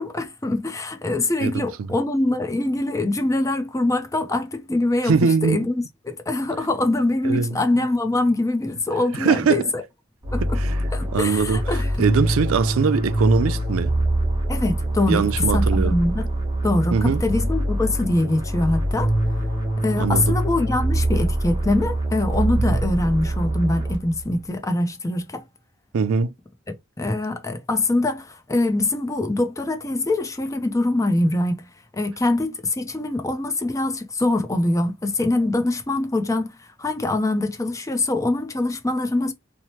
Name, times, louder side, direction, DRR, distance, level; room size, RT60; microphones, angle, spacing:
voice 1, 0.0-5.2 5.4-9.8 10.3-10.6 10.9-11.9 14.5-15.3 15.5-16.3 16.6-19.1 19.8-25.4 27.0-31.7 31.9-36.5 36.8-39.3, left 2 dB, 15° left, 0.5 m, -23 dB
voice 2, 1.4-1.9 5.0-5.6 7.2-7.6 9.1-9.7 10.4-13.9 15.1-16.0 16.9-17.2 20.0-20.4 22.7-22.8 25.9-26.3, right 5 dB, 85° right, 0.4 m, -22 dB
sound 1, 10.2-24.3, right 1 dB, 25° right, 1.1 m, -24 dB
3.0 x 2.0 x 2.8 m
head